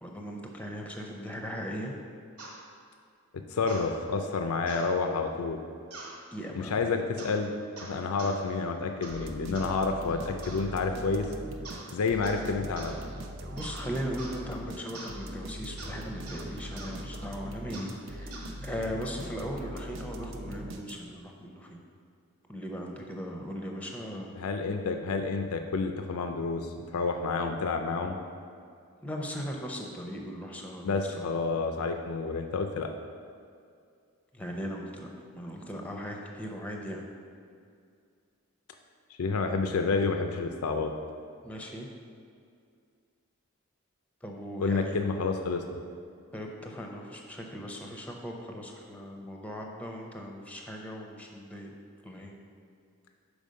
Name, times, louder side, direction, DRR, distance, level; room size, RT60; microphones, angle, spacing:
voice 1, 0.0-2.0 6.3-6.9 13.5-21.8 22.5-24.3 29.0-31.3 34.3-35.1 35.3-37.0 41.4-41.9 44.2-45.0 46.3-51.7 52.0-52.3, equal, 5° left, 1 dB, 0.6 m, -38 dB
sound 1, 2.4-2.6 3.7-3.9 4.7-4.9 5.9-6.2 7.2-7.4 7.8-8.4 9.0-9.2 9.5-9.7 10.4-10.7 11.6-11.9 12.2-12.5 12.8-13.0 13.6-13.8 14.2-14.4 14.9-15.2 15.8-16.0 16.3-16.4 16.8-16.9 17.7-17.9 18.3-18.5, right 2 dB, 90° right, 1.5 m, -44 dB
voice 2, 3.5-5.6 6.6-7.5 7.8-11.3 11.9-12.9 24.4-28.2 30.8-32.9 39.2-40.9 44.6-45.8, left 4 dB, 80° left, 5 dB, 0.5 m, -29 dB
sound 2, 9.1-21.3, right 1 dB, 55° right, 0.6 m, -41 dB
5.3 x 4.9 x 6.3 m, 2.3 s
head